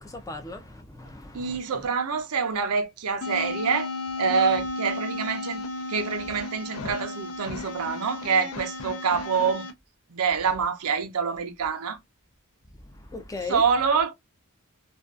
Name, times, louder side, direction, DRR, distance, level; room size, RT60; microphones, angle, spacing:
voice 1, 0.0-1.9 12.8-13.6, left 2 dB, 15° left, 0.4 m, -38 dB
voice 2, 1.3-3.9 4.2-5.6 5.9-9.7 10.1-12.0 13.5-14.1, right 5 dB, 80° right, 0.6 m, -26 dB
sound 1, 3.2-9.7, left 2 dB, 75° left, 0.5 m, -34 dB
2.5 x 2.3 x 2.3 m
head